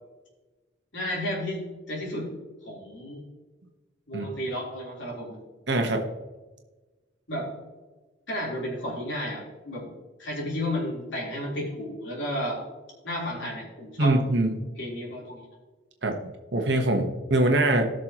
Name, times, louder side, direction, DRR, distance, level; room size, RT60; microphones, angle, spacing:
voice 1, 0.9-2.3 2.6-3.2 4.1-5.4 7.3-7.5 8.3-9.9 10.2-12.6 13.0-14.2 14.8-15.5, equal, 70° left, -3 dB, 3.8 m, -32 dB
voice 2, 5.7-6.1 14.0-14.7 16.0-16.2 16.5-17.9, right 1 dB, 60° right, 3 dB, 1.2 m, -23 dB
19.0 x 6.4 x 3.0 m, 1.2 s
head